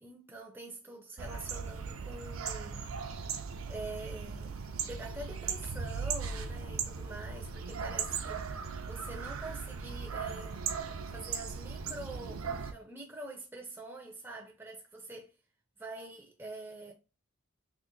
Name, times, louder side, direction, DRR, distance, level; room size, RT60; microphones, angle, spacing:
voice 1, 0.0-2.9 3.7-4.6 4.8-8.5 8.9-10.6 11.1-15.3 15.8-16.9, right 2 dB, 10° right, 0.4 m, -45 dB
sound 1, 1.2-12.7, right 6 dB, 80° right, 0.5 m, -38 dB
3.0 x 2.5 x 3.8 m
head